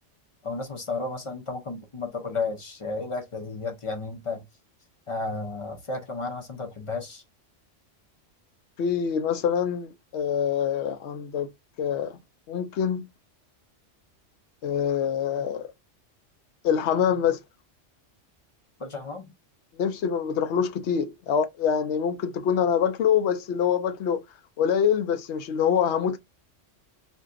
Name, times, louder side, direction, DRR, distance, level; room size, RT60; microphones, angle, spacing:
voice 1, 0.4-4.4 5.1-7.2 18.8-19.3, left 3 dB, 35° left, 0.5 m, -33 dB
voice 2, 8.8-11.5 11.8-12.2 12.5-13.1 14.6-15.7 16.6-17.4 19.8-24.2 24.6-26.2, left 8 dB, 70° left, 0.8 m, -25 dB
2.6 x 2.2 x 3.5 m
omnidirectional pair, 1.3 m